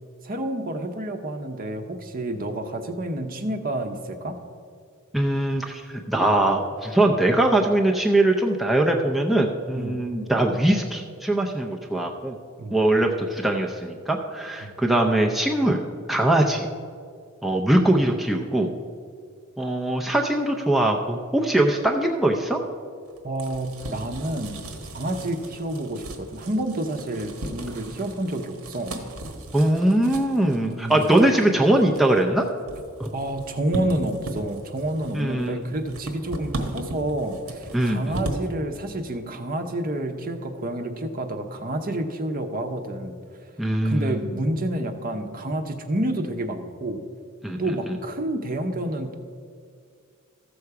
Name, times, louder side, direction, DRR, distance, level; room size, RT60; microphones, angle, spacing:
voice 1, 0.2-4.4 9.7-10.0 12.6-12.8 14.6-14.7 23.2-24.6 24.9-29.0 30.7-31.1 33.1-43.1 43.8-47.0 47.6-49.1, right 1 dB, 40° right, 7 dB, 0.8 m, -29 dB
voice 2, 5.1-12.4 12.7-15.8 16.1-16.7 17.4-18.7 19.6-22.6 29.5-32.5 33.0-33.1 35.1-35.6 37.7-38.2 43.6-44.3 47.4-47.6, right 1 dB, ahead, 0 dB, 0.5 m, -21 dB
sound 1, 23.0-38.5, right 2 dB, 85° right, 1.2 m, -37 dB
14.0 x 6.8 x 4.7 m, 2.2 s
head